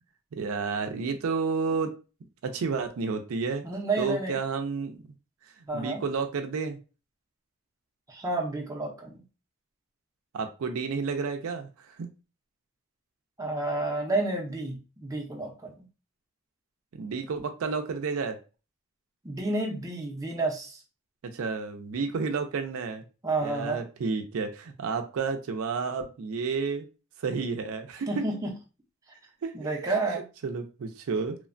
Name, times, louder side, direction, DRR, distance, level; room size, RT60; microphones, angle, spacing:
voice 1, 0.3-1.9 2.4-3.6 4.0-5.0 5.6-6.8 10.3-12.1 16.9-18.4 21.2-23.0 23.4-26.9 27.2-28.2 29.4-31.4, right 5 dB, 80° right, 6 dB, 0.4 m, -31 dB
voice 2, 3.6-4.4 5.7-6.0 8.1-9.2 13.4-15.9 19.2-20.8 23.2-23.8 28.1-28.5 29.5-30.2, right 2 dB, 15° right, 0 dB, 0.5 m, -30 dB
3.0 x 2.1 x 2.4 m, 0.32 s
head